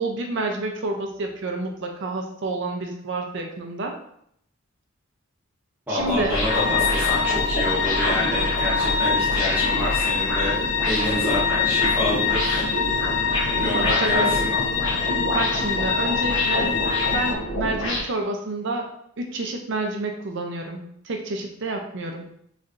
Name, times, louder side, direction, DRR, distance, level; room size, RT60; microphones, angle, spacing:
voice 1, 0.0-3.9 5.9-6.4 13.7-14.3 15.3-16.7 17.1-18.9 19.2-22.3, right 2 dB, 60° right, 3 dB, 0.6 m, -29 dB
voice 2, 5.9-10.5 10.8-12.7 13.6-14.5, left 1 dB, 10° right, -8 dB, 1.0 m, -27 dB
sound 1, 6.0-18.0, equal, 75° left, 1.1 m, -28 dB
sound 2, 6.5-17.3, left 6 dB, 55° left, 0.4 m, -24 dB
3.9 x 3.2 x 2.5 m, 0.69 s
head